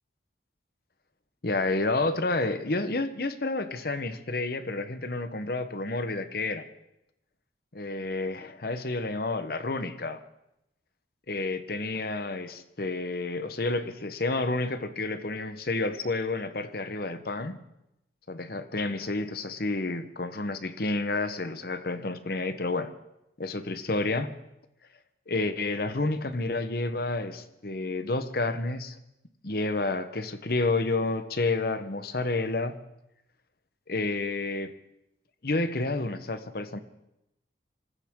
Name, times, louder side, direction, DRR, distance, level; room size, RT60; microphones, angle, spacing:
voice 1, 1.4-6.7 7.7-10.2 11.3-17.6 18.3-22.9 23.4-24.3 25.3-29.0 29.4-32.8 33.9-34.7 35.4-36.8, left 2 dB, 55° left, 11 dB, 1.0 m, -30 dB
24.0 x 15.0 x 3.8 m, 0.87 s
head